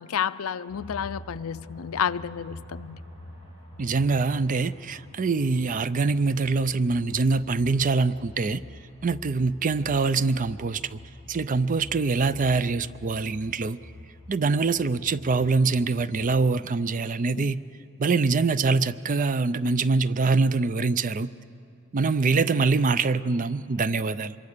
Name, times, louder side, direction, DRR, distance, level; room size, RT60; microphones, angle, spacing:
voice 1, 0.0-3.0 17.3-17.5, left 8 dB, 80° left, 0.5 m, -30 dB
sound 1, 0.7-16.4, left 1 dB, 85° right, 4.3 m, -47 dB
voice 2, 3.8-8.6 9.0-11.0 11.3-13.8 14.3-17.6 18.0-21.3 21.9-24.4, right 4 dB, 40° right, 0.5 m, -24 dB
25.5 x 23.0 x 6.7 m
head